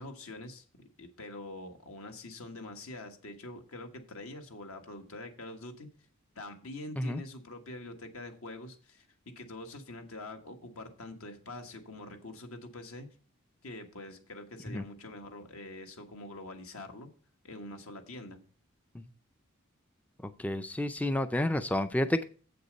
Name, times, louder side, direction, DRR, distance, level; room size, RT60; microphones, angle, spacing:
voice 1, 0.0-5.9 6.3-13.1 13.6-17.1 17.4-18.4, left 2 dB, 80° left, 5 dB, 1.5 m, -45 dB
voice 2, 20.4-22.2, left 1 dB, 5° left, 10 dB, 0.3 m, -30 dB
7.7 x 6.7 x 5.2 m, 0.41 s
head